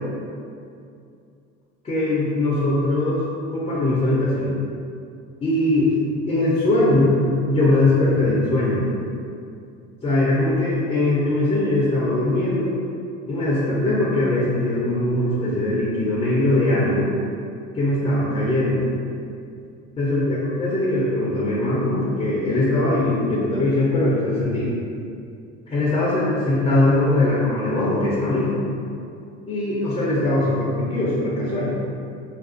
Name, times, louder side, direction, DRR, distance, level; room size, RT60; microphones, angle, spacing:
voice 1, 1.8-3.2 3.5-4.5 5.4-7.2 7.5-8.8 10.0-12.7 13.3-17.1 17.7-18.8 20.0-24.7 25.7-28.5 29.5-31.7, left 2 dB, 20° left, -7 dB, 0.4 m, -21 dB
2.5 x 2.2 x 2.4 m, 2.5 s
supercardioid pair, 95°, 37 cm